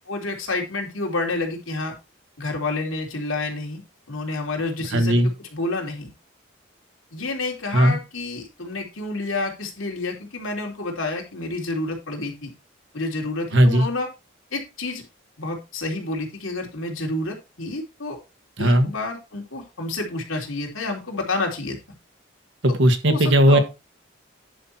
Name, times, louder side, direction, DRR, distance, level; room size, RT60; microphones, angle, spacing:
voice 1, 0.1-1.9 2.4-3.8 4.1-6.1 7.1-12.5 12.9-14.1 14.5-15.0 15.4-18.2 18.6-21.8 23.1-23.6, left 2 dB, 85° left, 1 dB, 3.1 m, -29 dB
voice 2, 4.9-5.3 7.7-8.0 13.5-13.9 18.6-18.9 22.6-23.6, equal, 65° right, 7 dB, 1.6 m, -17 dB
10.0 x 5.8 x 4.3 m, 0.26 s
head